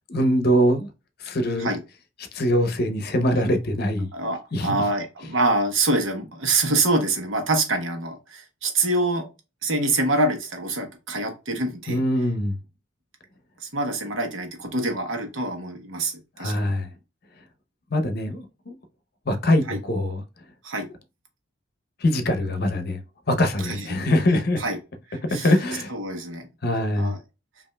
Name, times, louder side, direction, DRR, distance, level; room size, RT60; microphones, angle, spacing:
voice 1, 0.1-0.9 1.2-1.7 2.3-4.1 4.5-4.8 11.9-12.6 16.4-16.9 17.9-18.8 19.3-20.2 22.0-23.0 23.3-24.6 25.3-25.9 26.6-27.1, left 1 dB, 50° left, 0.8 m, -23 dB
voice 2, 4.1-9.3 9.6-12.0 13.6-16.7 19.7-19.8 20.6-20.9 23.6-23.9 24.6-24.8 25.1-25.5 25.9-26.5 27.0-27.2, right 2 dB, 75° right, 1.1 m, -25 dB
5.2 x 2.7 x 2.2 m
head